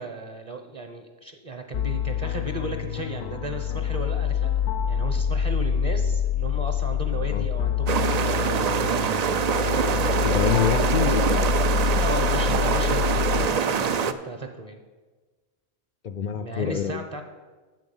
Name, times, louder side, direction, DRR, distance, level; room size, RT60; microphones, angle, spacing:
voice 1, 0.0-4.5 4.9-8.8 9.6-10.4 12.0-14.8 16.3-17.2, right 2 dB, 35° right, 5 dB, 0.9 m, -35 dB
sound 1, 1.7-13.5, left 8 dB, 80° left, 1.0 m, -26 dB
sound 2, 7.9-14.1, right 6 dB, 50° right, 0.5 m, -24 dB
voice 2, 10.2-11.5 16.0-17.0, left 7 dB, 60° left, 9 dB, 0.5 m, -26 dB
9.3 x 7.1 x 7.1 m, 1.3 s
omnidirectional pair, 1.1 m